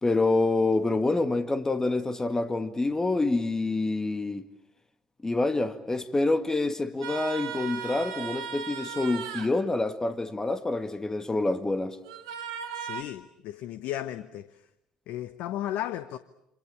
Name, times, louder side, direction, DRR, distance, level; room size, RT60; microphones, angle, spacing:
voice 1, 0.0-4.5 5.2-12.0, left 2 dB, 20° left, 2.0 m, -27 dB
sound 1, 7.0-9.5 12.0-13.0, right 8 dB, 75° right, 2.3 m, -37 dB
voice 2, 12.7-14.6 15.1-16.2, left 12 dB, 65° left, 1.0 m, -35 dB
27.5 x 26.5 x 7.3 m
hypercardioid pair, 55°, 3 cm